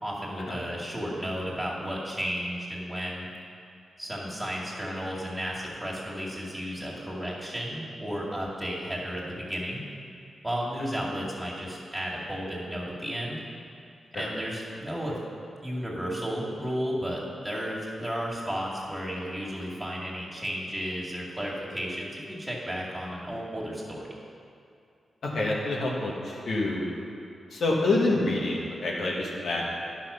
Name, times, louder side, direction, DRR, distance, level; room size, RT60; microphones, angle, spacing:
voice 1, 0.0-3.3 4.0-9.8 10.4-13.4 14.1-15.2 15.6-24.1, equal, 10° right, -5 dB, 2.4 m, -33 dB
voice 2, 25.2-26.9 27.5-29.7, left 2 dB, 75° left, -3 dB, 1.7 m, -27 dB
10.5 x 6.1 x 5.7 m, 2.5 s
cardioid pair, 85°, 0 cm